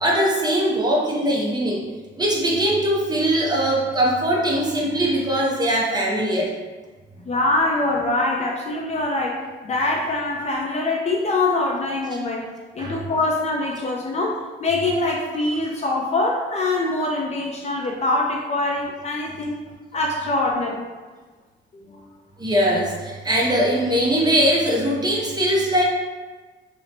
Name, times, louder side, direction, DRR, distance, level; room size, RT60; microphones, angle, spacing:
voice 1, 0.0-1.8 2.1-6.5 12.8-13.0 22.4-25.8, right 1 dB, 20° right, -3 dB, 0.5 m, -21 dB
voice 2, 7.3-12.5 12.7-19.6 19.9-20.8 21.7-22.1, left 2 dB, 35° left, 0 dB, 0.4 m, -24 dB
2.9 x 2.0 x 2.6 m, 1.3 s
cardioid pair, 90°, 20 cm